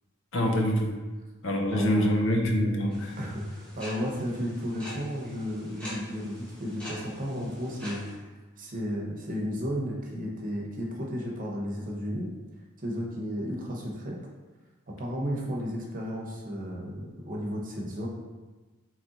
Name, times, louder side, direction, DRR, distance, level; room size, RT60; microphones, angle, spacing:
voice 1, 0.3-0.9 1.4-3.1, equal, 65° left, 1 dB, 0.7 m, -25 dB
voice 2, 1.7-2.3 3.2-8.3 8.6-12.3 12.8-14.2 15.0-18.1, equal, 40° right, -2 dB, 0.8 m, -33 dB
sound 1, 2.9-8.1, equal, 5° left, 1.3 m, -44 dB
3.9 x 3.1 x 4.0 m, 1.2 s
head